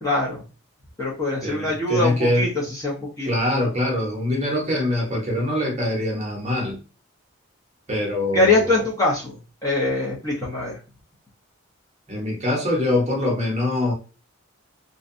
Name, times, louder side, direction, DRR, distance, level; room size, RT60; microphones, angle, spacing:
voice 1, 0.0-0.4 1.0-3.3 8.3-10.8, left 2 dB, 15° left, -4 dB, 0.6 m, -23 dB
voice 2, 1.4-2.5 3.2-6.8 7.9-8.8 12.1-13.9, left 1 dB, 30° right, -1 dB, 0.8 m, -23 dB
2.6 x 2.2 x 2.5 m, 0.34 s
head